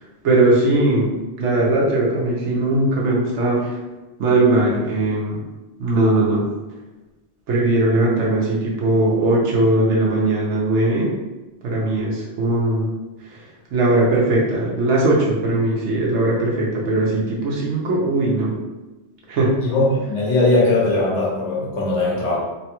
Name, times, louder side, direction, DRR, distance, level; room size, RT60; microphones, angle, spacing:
voice 1, 0.2-1.1 1.4-3.8 4.2-5.4 5.8-6.4 7.5-11.1 11.6-12.8 13.3-18.5 19.3-19.5, right 2 dB, 80° right, -4 dB, 1.0 m, -19 dB
voice 2, 19.6-22.4, left 2 dB, 80° left, -5 dB, 1.3 m, -19 dB
3.1 x 2.2 x 2.9 m, 1.1 s
omnidirectional pair, 1.2 m